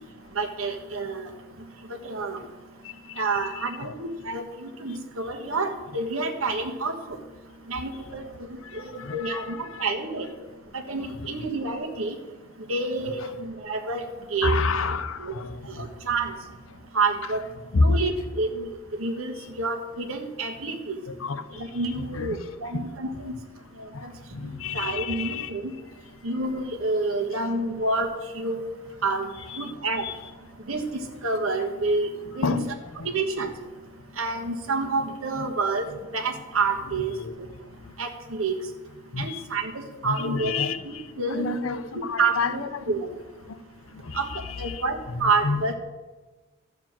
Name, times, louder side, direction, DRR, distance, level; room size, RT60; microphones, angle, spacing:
voice 1, 0.3-1.3 2.0-2.4 3.2-7.2 7.7-8.2 8.5-10.3 10.7-12.1 12.7-14.0 14.3-14.6 15.2-15.3 15.8-16.3 16.9-17.4 17.8-18.7 19.0-21.0 21.6-23.3 24.0-24.1 24.7-25.7 26.2-28.1 28.3-28.6 29.0-29.3 29.6-30.1 30.7-32.1 32.3-32.5 33.0-33.5 34.2-35.9 36.1-37.1 38.0-38.5 39.2-40.5 40.8-41.5 41.9-43.1 44.1-44.3 44.6-45.7, right 3 dB, 85° right, 4 dB, 1.4 m, -28 dB
voice 2, 9.0-9.8 11.2-11.5 13.2-13.3 14.4-15.8 17.7-18.0 21.1-21.4 22.1-22.4 22.7-22.8 23.9-24.0 24.3-25.5 29.5-29.7 30.0-30.1 32.4-32.7 33.0-33.1 35.4-35.5 37.2-37.3 39.1-39.4 40.0-40.8 41.3-42.9 44.1-45.6, left 4 dB, 75° left, 11 dB, 0.7 m, -29 dB
13.0 x 4.8 x 7.3 m, 1.2 s
head